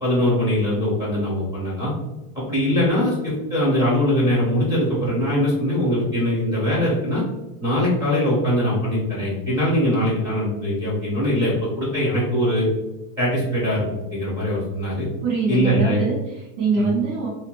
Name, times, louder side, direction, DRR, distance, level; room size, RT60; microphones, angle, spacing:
voice 1, 0.0-1.9 2.3-7.2 7.6-12.7 13.2-15.1 15.5-16.0 16.8-16.9, equal, 10° right, -7 dB, 0.4 m, -22 dB
voice 2, 15.2-17.3, right 3 dB, 50° right, -5 dB, 0.8 m, -23 dB
2.5 x 2.2 x 2.9 m, 1.0 s
supercardioid pair, 165°, 47 cm